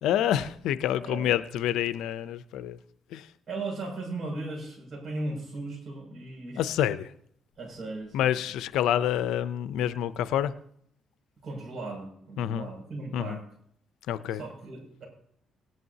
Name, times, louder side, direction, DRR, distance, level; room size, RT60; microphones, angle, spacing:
voice 1, 0.0-2.8 3.1-3.3 6.6-7.1 8.1-10.5 12.4-12.7 13.1-13.4 14.1-14.4, left 11 dB, 90° left, 14 dB, 0.5 m, -27 dB
voice 2, 3.5-6.6 7.6-8.3 11.4-13.4 14.4-15.1, right 2 dB, 45° right, -1 dB, 6.4 m, -37 dB
18.5 x 11.0 x 2.8 m, 0.66 s
cardioid pair, 90°, 0 cm